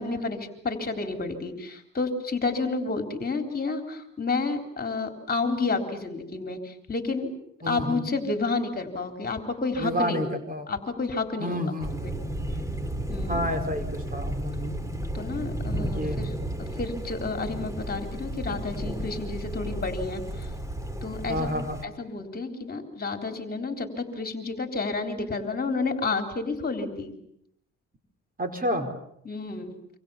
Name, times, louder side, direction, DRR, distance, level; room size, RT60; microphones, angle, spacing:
voice 1, 0.0-7.3 7.7-10.2 10.7-11.6 12.0-12.1 13.1-13.4 15.1-16.3 16.6-20.5 21.0-21.5 21.8-27.1 29.3-29.7, left 3 dB, 30° left, 5 dB, 3.9 m, -30 dB
voice 2, 7.6-8.1 9.8-10.7 11.4-12.1 13.3-14.8 15.8-16.2 21.3-21.8 28.4-28.9, equal, 30° right, 7 dB, 4.6 m, -30 dB
Thunder, 11.8-21.8, right 1 dB, 10° right, 3.1 m, -33 dB
26.5 x 26.0 x 7.2 m, 0.74 s
cardioid pair, 90°, 30 cm